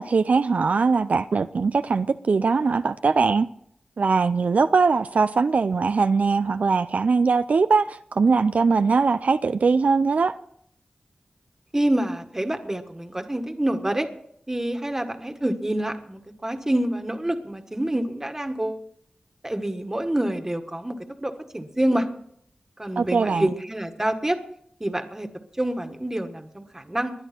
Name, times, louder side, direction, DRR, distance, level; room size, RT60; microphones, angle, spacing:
voice 1, 0.0-3.5 4.0-10.4 23.0-23.5, right 4 dB, 70° right, 0.4 m, -21 dB
voice 2, 11.7-14.1 14.5-18.8 19.4-22.1 22.8-24.4 24.8-25.3 25.6-27.1, right 1 dB, 20° right, 1.6 m, -27 dB
20.5 x 11.0 x 4.4 m
wide cardioid pair, 80°, 3 cm